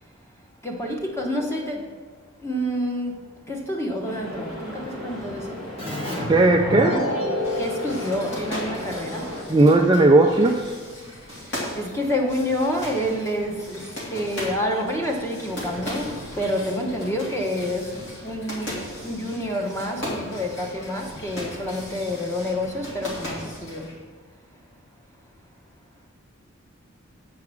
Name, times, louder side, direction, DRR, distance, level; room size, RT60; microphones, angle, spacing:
voice 1, 0.6-1.9 2.4-5.7 7.5-9.3 11.4-23.9, left 1 dB, 10° left, 1 dB, 1.0 m, -28 dB
sound 1, 4.0-9.4, equal, 80° left, 2.2 m, -36 dB
Keyboard (musical), 5.8-9.2, left 1 dB, 30° left, 2.7 m, -29 dB
voice 2, 6.3-7.0 9.5-10.8, right 2 dB, 20° right, 2 dB, 0.3 m, -16 dB
sound 2, 7.4-24.0, left 1 dB, 55° left, 2.5 m, -37 dB
8.4 x 4.7 x 6.2 m, 1.5 s
head